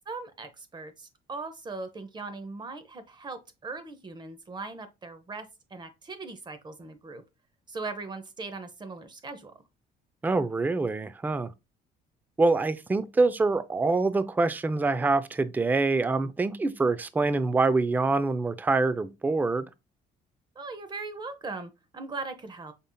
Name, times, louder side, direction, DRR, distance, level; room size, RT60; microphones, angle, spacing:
voice 1, 0.1-7.2 7.7-9.5 20.6-22.7, right 3 dB, 25° right, 0.8 m, -39 dB
voice 2, 10.2-11.5 12.4-19.7, right 3 dB, 10° right, 0.4 m, -25 dB
5.4 x 3.5 x 2.2 m
cardioid pair, 110°, 17 cm